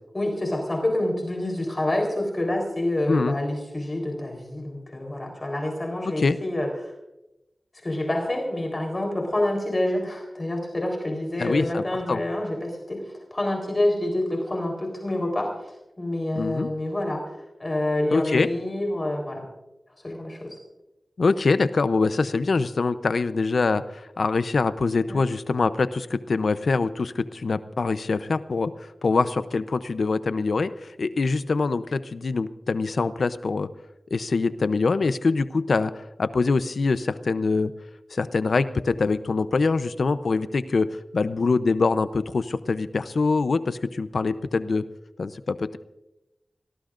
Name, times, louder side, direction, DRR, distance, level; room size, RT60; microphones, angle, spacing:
voice 1, 0.1-6.9 7.8-15.5 16.0-19.4 20.0-20.6 25.1-25.2, left 1 dB, 35° left, 1 dB, 3.8 m, -27 dB
voice 2, 11.4-12.2 16.4-16.7 18.1-18.5 21.2-28.7 29.0-30.7 31.0-33.7 34.1-37.7 38.1-44.9 45.2-45.8, left 4 dB, 75° left, 12 dB, 0.6 m, -24 dB
26.0 x 18.5 x 2.5 m, 0.94 s
wide cardioid pair, 80°, 0 cm